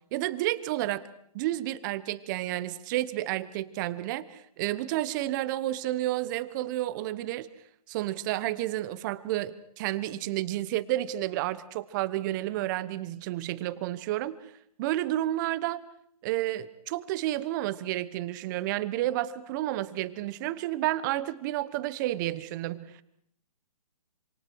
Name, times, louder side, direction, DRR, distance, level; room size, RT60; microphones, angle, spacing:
voice 1, 0.1-1.0 1.3-7.5 7.9-14.3 14.8-15.8 16.2-22.9, right 15 dB, 30° right, 15 dB, 1.1 m, -31 dB
27.5 x 27.0 x 4.7 m, 0.68 s
hypercardioid pair, 140°, 21 cm